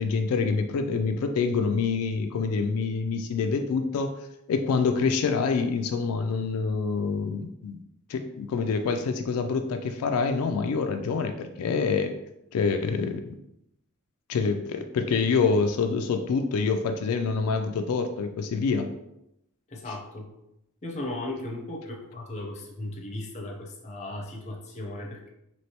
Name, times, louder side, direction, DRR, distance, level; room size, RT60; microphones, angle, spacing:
voice 1, 0.0-4.1 4.5-7.8 8.1-12.1 12.5-13.3 14.3-18.9, left 5 dB, 85° left, 6 dB, 0.3 m, -26 dB
voice 2, 19.7-20.3 20.8-25.3, left 1 dB, 30° left, 0 dB, 0.6 m, -36 dB
3.2 x 3.0 x 2.8 m, 0.84 s
head